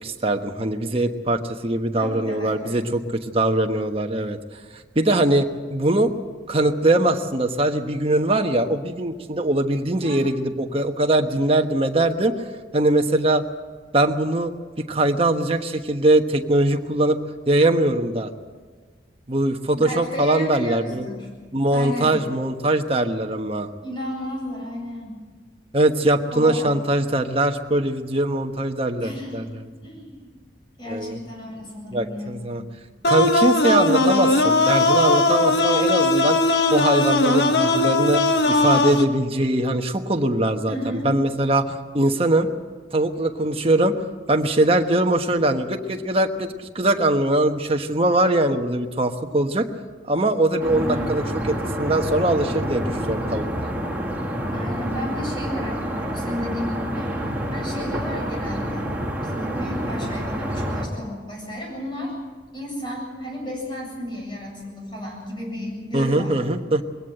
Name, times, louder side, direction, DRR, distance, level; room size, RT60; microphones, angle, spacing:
voice 1, 0.0-4.4 4.9-6.1 6.5-12.5 12.7-13.4 13.9-14.5 14.9-17.2 17.5-18.3 19.3-21.1 21.5-23.7 25.7-29.4 30.9-31.2 31.9-32.6 33.0-36.4 36.7-42.5 42.9-44.0 44.3-49.7 50.0-53.7 65.9-66.8, right 1 dB, 35° right, 5 dB, 1.2 m, -21 dB
voice 2, 2.0-2.8 10.0-10.2 19.7-21.3 21.7-22.2 23.8-25.2 26.3-26.8 28.9-30.3 30.8-32.5 36.9-37.1 40.7-41.1 50.7-51.1 54.5-58.9 59.2-62.1 62.5-66.4, equal, 25° left, -2 dB, 7.7 m, -33 dB
sound 1, 33.0-39.0, left 2 dB, 70° left, 1.4 m, -19 dB
sound 2, 50.6-60.9, equal, 10° right, 2.4 m, -28 dB
22.0 x 17.0 x 7.8 m, 1.5 s
head